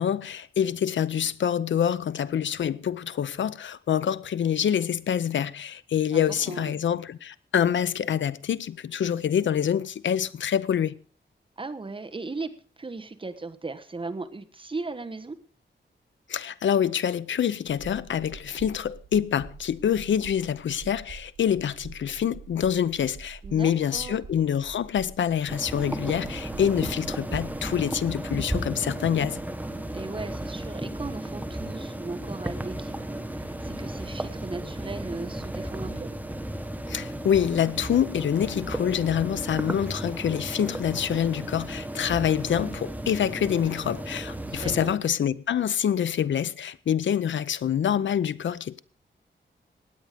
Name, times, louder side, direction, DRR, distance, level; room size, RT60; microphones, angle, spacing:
voice 1, 0.0-11.0 16.3-29.4 36.9-48.8, left 9 dB, 80° left, 0.6 m, -26 dB
voice 2, 6.1-6.8 11.6-12.5 12.8-15.4 23.4-24.2 29.9-36.1 44.5-44.9, right 3 dB, 25° right, 1.2 m, -37 dB
sound 1, 17.7-27.8, right 5 dB, 70° right, 7.3 m, -46 dB
sound 2, 25.5-44.9, right 1 dB, 10° right, 1.2 m, -34 dB
17.0 x 9.2 x 5.0 m
wide cardioid pair, 115°, 19 cm